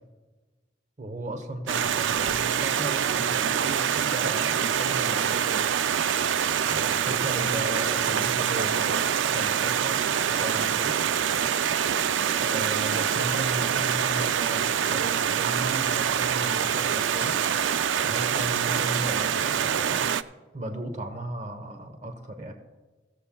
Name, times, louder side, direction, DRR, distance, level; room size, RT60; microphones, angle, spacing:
voice 1, 1.0-5.6 6.6-8.9 9.3-11.0 12.4-17.5 18.0-20.1 20.5-22.5, right 1 dB, 40° right, 6 dB, 1.0 m, -36 dB
Stream, 1.7-20.2, right 8 dB, 85° right, 0.4 m, -25 dB
16.5 x 14.0 x 2.3 m, 1.3 s
head